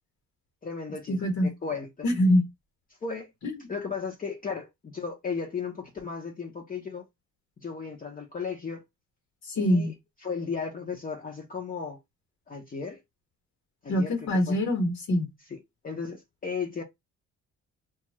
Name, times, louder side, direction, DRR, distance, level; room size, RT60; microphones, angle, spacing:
voice 1, 0.6-2.1 3.0-3.3 3.7-7.1 7.6-8.8 9.5-9.9 10.2-12.0 12.5-13.0 13.8-14.6 15.5-15.6 15.8-16.8, left 5 dB, 30° left, 0.7 m, -35 dB
voice 2, 1.2-1.5 2.0-2.4 3.4-3.5 9.5-9.9 13.9-15.3, left 1 dB, 65° left, 1.2 m, -24 dB
2.4 x 2.3 x 2.9 m
cardioid pair, 90°, 30 cm